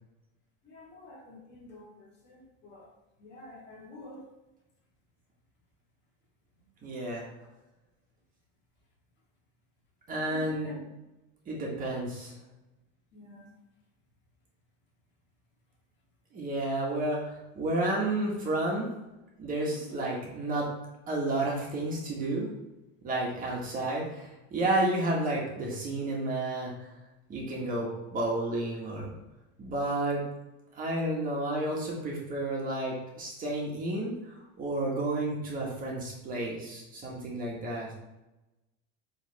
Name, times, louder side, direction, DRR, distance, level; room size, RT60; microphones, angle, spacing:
voice 1, 0.6-4.3 6.6-6.7 10.3-10.9 13.1-13.6 19.7-20.1, left 1 dB, 35° left, -3 dB, 1.9 m, -48 dB
voice 2, 6.8-7.2 10.1-10.7 11.4-12.3 16.3-18.9 19.4-20.7 21.1-22.5 23.0-26.9 27.3-29.1 29.6-30.2 30.7-37.9, right 2 dB, 25° right, -3 dB, 1.5 m, -31 dB
8.0 x 3.5 x 3.4 m, 1.0 s
supercardioid pair, 150°, 31 cm